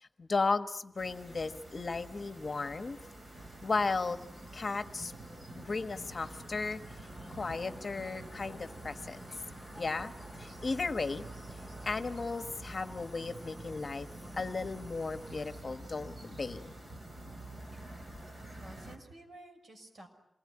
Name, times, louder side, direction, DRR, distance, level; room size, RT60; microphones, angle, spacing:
voice 1, 0.0-3.0 3.6-4.2 4.5-5.1 5.6-6.8 7.3-9.2 9.8-11.2 11.8-14.1 14.3-16.7, left 3 dB, 40° left, 10 dB, 1.3 m, -35 dB
sound 1, 1.0-19.0, right 1 dB, 35° right, 4.0 m, -47 dB
sound 2, 2.8-15.6, equal, 15° right, 6.4 m, -57 dB
voice 2, 17.7-18.1 18.6-20.1, right 1 dB, 55° right, 4 dB, 6.2 m, -53 dB
27.5 x 21.0 x 9.7 m, 0.82 s
wide cardioid pair, 150°, 0 cm